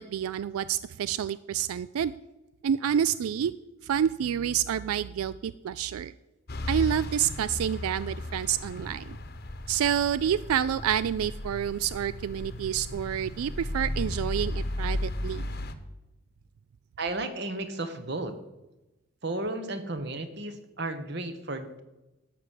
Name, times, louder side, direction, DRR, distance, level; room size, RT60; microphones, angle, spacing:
voice 1, 0.0-2.1 2.6-3.5 3.8-6.1 6.7-9.2 9.7-15.4, right 9 dB, 90° right, 16 dB, 0.3 m, -28 dB
sound 1, 6.5-15.7, left 1 dB, 45° left, 0.9 m, -35 dB
voice 2, 17.0-18.3 19.2-21.8, right 2 dB, 50° right, 9 dB, 1.1 m, -33 dB
12.0 x 6.0 x 8.2 m, 1.0 s
head